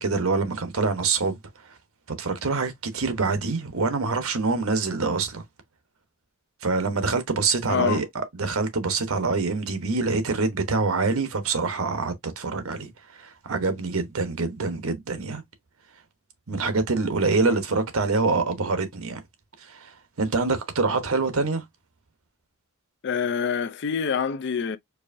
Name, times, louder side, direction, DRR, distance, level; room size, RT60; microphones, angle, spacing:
voice 1, 0.0-1.4 2.2-5.4 6.6-15.4 16.5-19.2 19.6-19.9 20.2-21.6, right 3 dB, 75° right, 1.0 m, -25 dB
voice 2, 7.7-8.0 17.4-17.6 23.0-24.8, left 6 dB, 55° left, 0.4 m, -26 dB
4.6 x 2.6 x 2.6 m
head